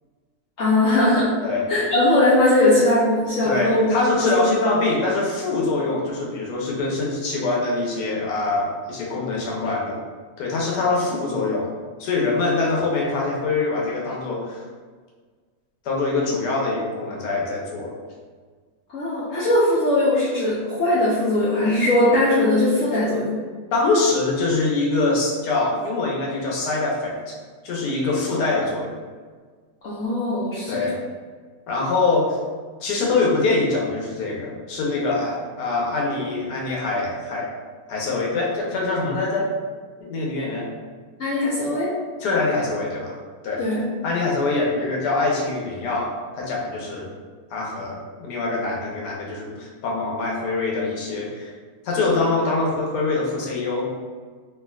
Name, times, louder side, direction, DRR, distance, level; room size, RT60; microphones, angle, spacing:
voice 1, 0.6-1.3 1.7-3.9 4.2-4.4 18.9-23.4 29.8-30.9 41.2-41.9 43.6-43.9, left 1 dB, 65° left, -8 dB, 0.8 m, -20 dB
voice 2, 3.4-10.0 10.4-11.7 12.0-14.6 15.8-17.9 23.7-27.4 27.6-29.0 30.7-31.0 31.7-32.4 32.8-37.5 37.9-39.5 40.0-40.7 42.2-43.1 43.4-43.6 44.0-47.1 47.5-51.5 51.8-53.9, left 3 dB, 85° left, -3 dB, 1.3 m, -24 dB
3.3 x 2.4 x 2.3 m, 1.5 s
omnidirectional pair, 1.7 m